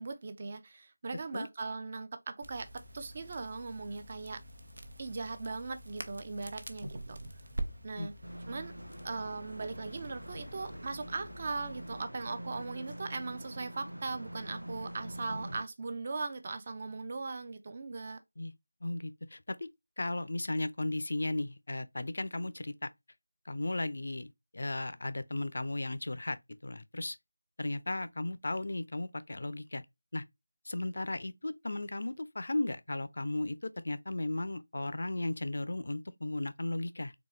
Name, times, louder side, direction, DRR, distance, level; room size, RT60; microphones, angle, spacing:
voice 1, 0.0-4.4 5.0-7.2 7.8-8.1 8.5-8.7 9.0-18.2, right 3 dB, 30° right, 0.5 m, -39 dB
Crackle, 2.4-12.0, right 1 dB, 55° right, 0.9 m, -46 dB
sound 1, 8.2-15.6, right 1 dB, 85° right, 0.7 m, -45 dB
voice 2, 18.8-19.7 20.0-22.9 23.5-27.2 27.6-29.8 30.1-30.2 30.7-37.1, left 2 dB, 50° left, 0.5 m, -35 dB
4.0 x 3.5 x 3.2 m
figure-of-eight pair, 165°, 0 cm